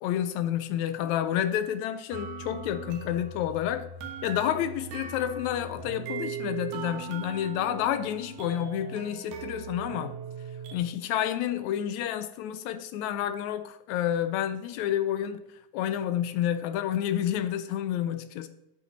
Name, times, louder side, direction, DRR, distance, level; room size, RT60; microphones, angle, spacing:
voice 1, 0.0-3.9 4.2-10.2 10.7-15.4 15.7-18.5, left 10 dB, 80° left, 1.7 m, -29 dB
sound 1, 2.1-10.8, right 6 dB, 85° right, 2.8 m, -39 dB
8.9 x 8.3 x 4.2 m
omnidirectional pair, 3.8 m